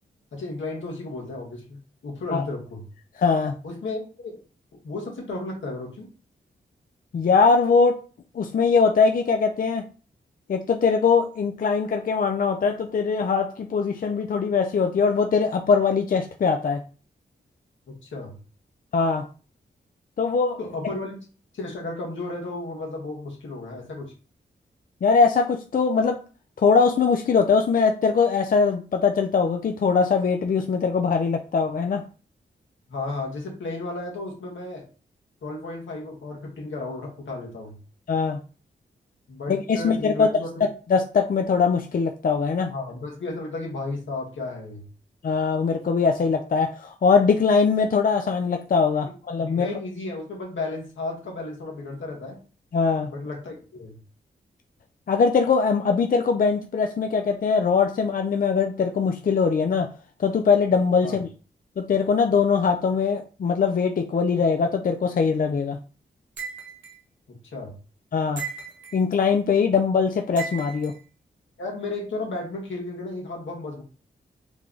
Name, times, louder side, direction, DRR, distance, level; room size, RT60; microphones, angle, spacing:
voice 1, 0.3-2.9 3.6-4.4 4.8-6.1 18.0-18.4 20.6-21.2 21.5-24.1 32.9-34.8 35.4-37.8 39.3-40.6 42.7-44.8 49.0-52.4 53.1-54.0 61.0-61.2 67.5-67.8 71.6-73.8, left 2 dB, 75° left, -1 dB, 1.3 m, -33 dB
voice 2, 3.2-3.6 7.1-8.0 8.3-9.8 10.5-16.8 18.9-19.3 20.2-20.6 25.0-26.2 26.6-32.0 38.1-38.4 39.5-40.3 40.9-42.7 45.2-49.7 52.7-53.1 55.1-59.9 60.2-61.3 61.8-65.8 68.1-68.4 68.9-70.9, left 5 dB, 45° left, 4 dB, 0.4 m, -21 dB
sound 1, 66.4-67.0 68.4-69.0 70.4-70.9, right 6 dB, 70° right, 0.9 m, -36 dB
3.2 x 2.2 x 3.8 m, 0.37 s
cardioid pair, 40°, 20 cm